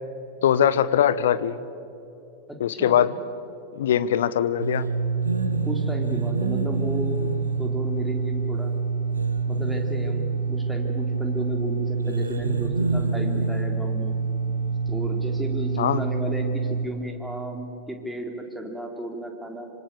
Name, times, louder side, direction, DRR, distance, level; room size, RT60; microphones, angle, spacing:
voice 1, 0.4-1.6 2.6-3.1 3.7-4.9 15.8-16.0, left 9 dB, 60° left, 15 dB, 1.0 m, -21 dB
voice 2, 2.5-3.0 5.6-7.3 7.6-8.7 9.5-14.2 14.9-19.7, right 1 dB, 5° right, 3 dB, 3.4 m, -33 dB
sound 1, 4.6-16.9, right 4 dB, 75° right, 1.6 m, -26 dB
26.5 x 26.0 x 6.9 m, 2.8 s
figure-of-eight pair, 90°, 0 cm